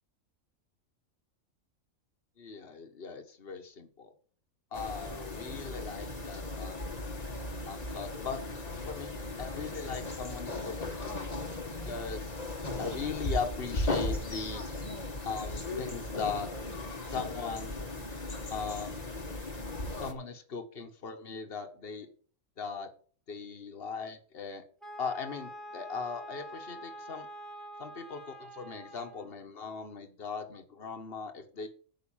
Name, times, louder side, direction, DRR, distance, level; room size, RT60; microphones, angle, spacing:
voice 1, 2.4-4.1 4.7-6.9 7.7-9.1 9.4-11.3 11.8-12.4 12.8-14.6 15.2-16.5 17.1-17.8 18.5-19.0 20.0-22.1 22.6-22.9 23.3-24.6 25.0-27.3 27.8-31.7, left 5 dB, 50° left, 5 dB, 1.6 m, -39 dB
sound 1, 4.7-20.1, left 2 dB, 30° left, 1.5 m, -37 dB
Wind instrument woodwind instrument, 24.8-29.4, equal, ahead, 1.8 m, -46 dB
9.7 x 5.8 x 7.4 m, 0.43 s
omnidirectional pair, 1.3 m